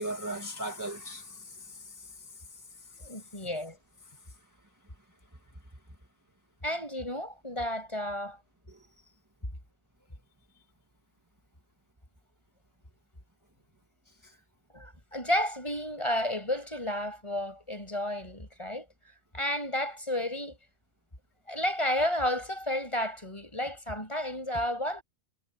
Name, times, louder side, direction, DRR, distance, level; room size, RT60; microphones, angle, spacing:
voice 1, 0.0-3.2 8.7-9.1 14.1-14.3, right 1 dB, 15° right, 1.8 m, -40 dB
voice 2, 3.0-3.8 6.6-8.4 14.7-20.6 21.5-25.0, left 1 dB, 20° left, 7.6 m, -32 dB
omnidirectional pair, 1.4 m